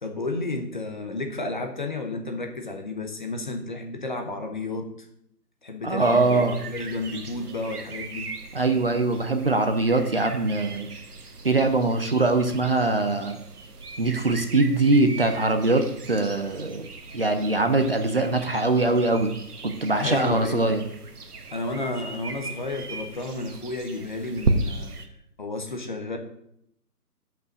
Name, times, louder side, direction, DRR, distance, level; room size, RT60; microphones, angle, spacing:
voice 1, 0.0-5.1 5.6-8.3 20.0-20.7 21.5-24.9 25.4-26.2, left 2 dB, 30° left, 5 dB, 0.9 m, -32 dB
voice 2, 5.8-6.6 8.5-10.9 11.4-13.4 14.0-16.9 17.1-19.3 19.6-20.8, right 2 dB, 35° right, 7 dB, 0.7 m, -22 dB
sound 1, 6.0-25.1, right 3 dB, 70° right, 1.5 m, -36 dB
7.4 x 5.6 x 7.4 m, 0.74 s
hypercardioid pair, 165°, 48 cm